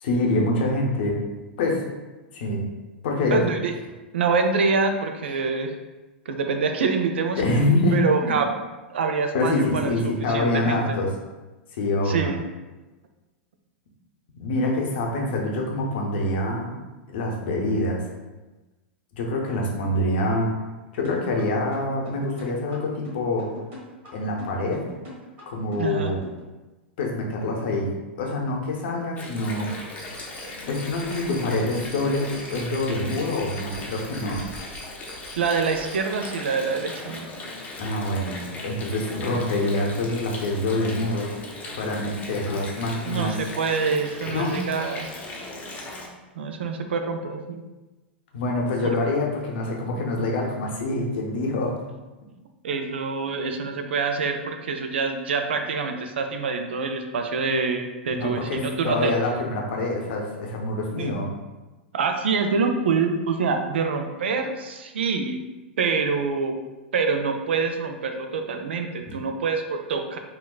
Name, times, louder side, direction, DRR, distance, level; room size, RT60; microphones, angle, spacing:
voice 1, 0.0-1.2 1.6-1.8 2.3-2.6 3.0-3.5 7.4-8.4 9.3-11.1 11.7-12.3 14.4-16.7 17.1-18.0 19.1-20.5 20.9-23.5 24.1-24.8 25.5-26.3 27.0-29.8 30.6-34.4 37.8-41.3 41.8-43.4 44.3-44.6 48.3-51.8 58.1-61.3 69.1-69.2, left 2 dB, 65° left, 0 dB, 0.6 m, -25 dB
voice 2, 3.3-3.7 4.1-5.7 6.3-7.4 7.9-8.5 8.9-10.0 10.3-11.0 12.1-12.4 25.8-26.2 35.4-37.3 43.0-45.1 46.4-47.6 48.8-48.9 52.6-59.1 61.0-61.1 61.9-65.4 65.8-66.5 66.9-70.2, right 4 dB, 75° right, 5 dB, 0.3 m, -26 dB
sound 1, 21.0-26.4, left 1 dB, 40° right, 1.3 m, -42 dB
Water, 29.2-46.1, left 2 dB, 25° left, 0.6 m, -38 dB
sound 2, 30.0-36.0, equal, ahead, 1.5 m, -44 dB
3.5 x 2.3 x 2.3 m, 1.1 s
hypercardioid pair, 100°, 6 cm